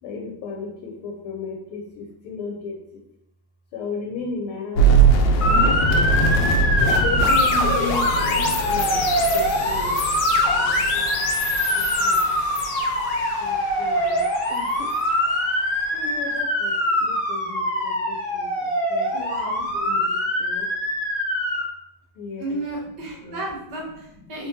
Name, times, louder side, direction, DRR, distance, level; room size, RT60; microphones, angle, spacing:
voice 1, 0.0-3.0 3.7-5.1 6.1-9.0 9.3-10.0 10.5-11.2 11.7-12.4 13.4-15.0 15.9-19.1 19.6-20.7 22.1-22.6 23.1-23.4, left 4 dB, 90° left, 1 dB, 1.5 m, -35 dB
sound 1, 4.8-15.8, right 3 dB, 75° left, 1.1 m, -23 dB
Motor vehicle (road) / Siren, 5.4-21.6, left 1 dB, 45° left, 0.4 m, -23 dB
voice 2, 19.1-19.7 22.4-24.5, right 1 dB, 60° right, -2 dB, 1.4 m, -32 dB
3.5 x 3.3 x 2.7 m, 0.84 s
omnidirectional pair, 2.3 m